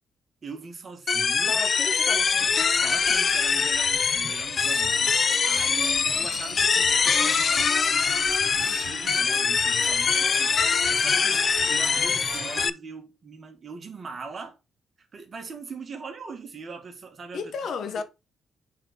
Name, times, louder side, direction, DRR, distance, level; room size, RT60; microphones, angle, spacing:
voice 1, 0.4-1.5 2.8-5.2 5.4-14.6 15.0-17.4, right 4 dB, 35° right, 1.7 m, -41 dB
sound 1, 1.1-12.7, left 5 dB, 40° left, 0.4 m, -23 dB
voice 2, 1.5-2.5 4.8-4.9 5.8-6.1 17.3-18.0, left 5 dB, 60° left, 0.8 m, -34 dB
sound 2, 4.6-12.7, right 8 dB, 75° right, 1.1 m, -42 dB
7.6 x 4.1 x 4.1 m
cardioid pair, 125°, 0 cm